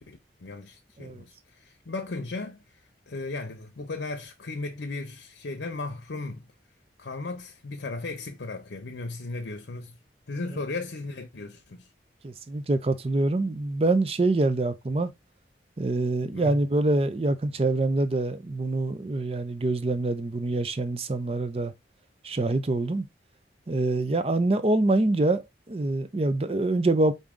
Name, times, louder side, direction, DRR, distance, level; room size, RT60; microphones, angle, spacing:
voice 1, 0.0-2.6 3.1-6.5 7.0-10.0 10.3-11.9 16.3-16.6, left 3 dB, 80° left, 0.7 m, -36 dB
voice 2, 12.2-15.1 15.8-21.7 22.2-23.1 23.7-27.1, right 2 dB, 35° right, 0.5 m, -25 dB
4.7 x 2.7 x 3.6 m
head